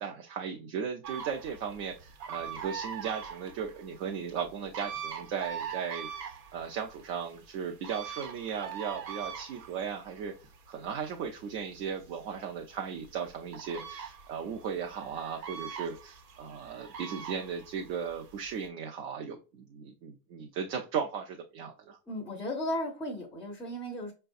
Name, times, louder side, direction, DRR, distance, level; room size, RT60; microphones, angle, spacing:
voice 1, 0.0-10.3 10.7-22.0, right 7 dB, 45° right, 0.6 m, -37 dB
sound 1, 1.0-18.7, right 7 dB, 80° right, 1.2 m, -43 dB
voice 2, 22.1-24.1, left 1 dB, 5° left, 0.5 m, -35 dB
5.6 x 2.2 x 2.5 m
supercardioid pair, 145°, 49 cm